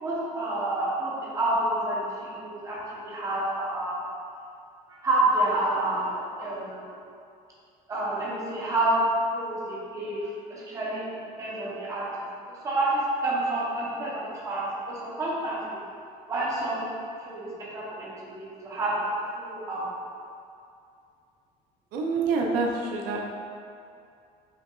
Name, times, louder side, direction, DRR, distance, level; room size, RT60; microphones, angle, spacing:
voice 1, 0.0-4.0 4.9-6.9 7.9-11.1 11.4-12.1 12.5-15.8 16.3-16.9 17.2-19.0 19.4-19.9, right 1 dB, 20° right, -7 dB, 0.7 m, -29 dB
voice 2, 21.9-23.2, right 4 dB, 75° right, -1 dB, 0.4 m, -26 dB
5.5 x 2.3 x 2.3 m, 2.5 s
cardioid pair, 175°, 16 cm